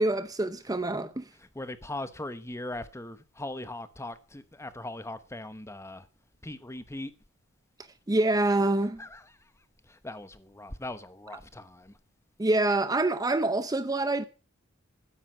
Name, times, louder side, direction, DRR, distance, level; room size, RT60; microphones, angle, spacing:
voice 1, 0.0-1.2 8.1-9.0 12.4-14.2, right 2 dB, 20° right, 0.7 m, -26 dB
voice 2, 1.4-6.1 6.4-7.1 9.0-9.5 9.8-12.0, left 1 dB, 15° left, 1.1 m, -40 dB
12.5 x 10.0 x 6.2 m
head